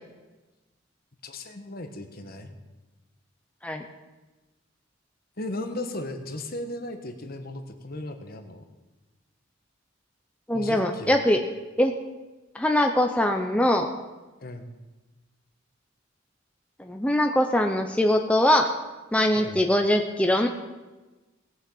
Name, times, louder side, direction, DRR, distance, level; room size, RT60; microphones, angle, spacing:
voice 1, 1.2-2.5 5.4-8.6 10.5-11.2 14.4-14.7 19.4-19.6, left 1 dB, 45° left, 6 dB, 1.3 m, -36 dB
voice 2, 10.5-11.4 11.8-11.9 12.5-13.9 16.8-18.7 19.1-20.5, left 1 dB, 5° left, 3 dB, 0.7 m, -22 dB
18.5 x 6.4 x 7.8 m, 1.2 s
head